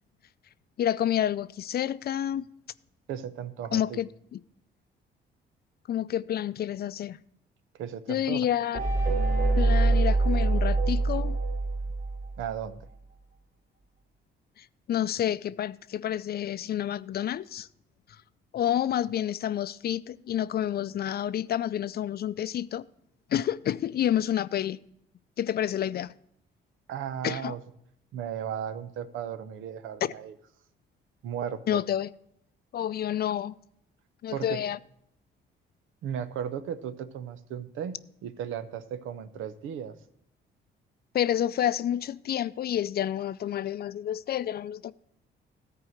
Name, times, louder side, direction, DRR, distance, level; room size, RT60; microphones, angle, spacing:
voice 1, 0.8-2.5 3.7-4.4 5.9-7.2 8.1-8.8 9.6-11.4 14.6-17.7 18.5-22.8 23.3-24.8 25.4-26.1 27.2-27.5 30.0-30.1 31.7-32.1 32.7-33.5 34.2-34.8 41.1-44.9, left 11 dB, 50° left, 0.5 m, -29 dB
voice 2, 3.1-4.0 7.8-8.5 12.4-12.9 26.9-27.6 28.1-30.3 31.2-31.8 34.3-34.6 36.0-38.0 38.2-40.0, right 8 dB, 85° right, 0.8 m, -35 dB
sound 1, 8.7-12.5, right 2 dB, 45° right, 2.8 m, -24 dB
13.5 x 4.7 x 6.4 m
cardioid pair, 90°, 20 cm